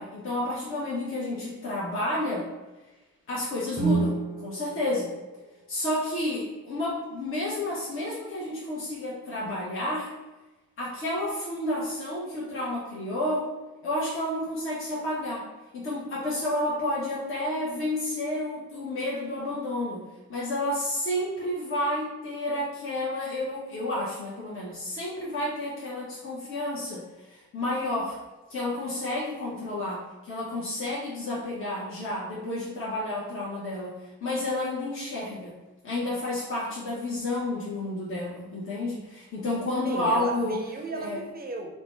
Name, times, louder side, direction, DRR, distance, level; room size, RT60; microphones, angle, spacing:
voice 1, 0.0-2.5 3.3-5.1 5.7-10.1 10.8-13.5 13.8-15.4 15.7-20.0 20.3-28.2 28.5-35.5 35.8-40.6 40.9-41.2, left 1 dB, 40° left, -6 dB, 0.9 m, -30 dB
Guitar, 3.7-6.3, right 4 dB, 25° left, 1.5 m, -31 dB
voice 2, 39.8-41.8, right 3 dB, 30° right, 3 dB, 0.5 m, -35 dB
2.7 x 2.1 x 3.3 m, 1.1 s
supercardioid pair, 50°, 32 cm